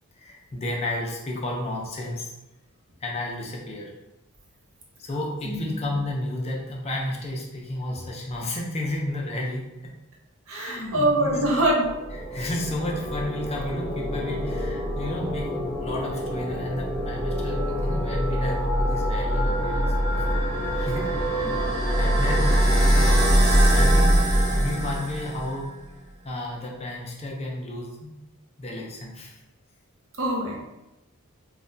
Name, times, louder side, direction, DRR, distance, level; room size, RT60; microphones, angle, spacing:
voice 1, 0.2-2.3 3.0-3.9 5.0-9.7 10.5-11.4 12.3-20.2 20.9-21.6 22.0-24.2 24.5-25.7 26.2-28.1 28.6-29.4, left 1 dB, 30° left, -1 dB, 0.4 m, -32 dB
voice 2, 10.5-11.9 20.8-20.9 21.4-21.6 30.2-30.6, right 1 dB, 65° right, -3 dB, 0.7 m, -24 dB
sound 1, 11.4-25.6, equal, 20° right, 0.8 m, -24 dB
3.1 x 2.1 x 2.6 m, 0.95 s
head